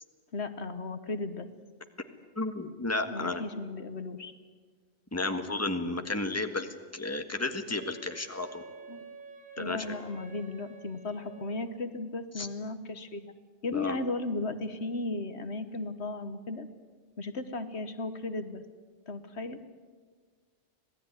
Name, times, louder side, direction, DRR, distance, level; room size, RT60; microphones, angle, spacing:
voice 1, 0.3-1.5 3.1-4.3 8.9-9.0 9.6-13.3 13.6-16.7 17.2-18.6 19.1-19.6, left 3 dB, 65° left, 10 dB, 1.5 m, -35 dB
voice 2, 2.4-3.4 5.1-8.6 9.6-9.9 12.4-12.5 13.7-14.0, left 2 dB, 15° left, 6 dB, 1.7 m, -32 dB
Wind instrument woodwind instrument, 7.7-11.8, right 3 dB, 40° right, 3.1 m, -50 dB
26.5 x 17.5 x 9.7 m, 1.5 s
omnidirectional pair, 1.2 m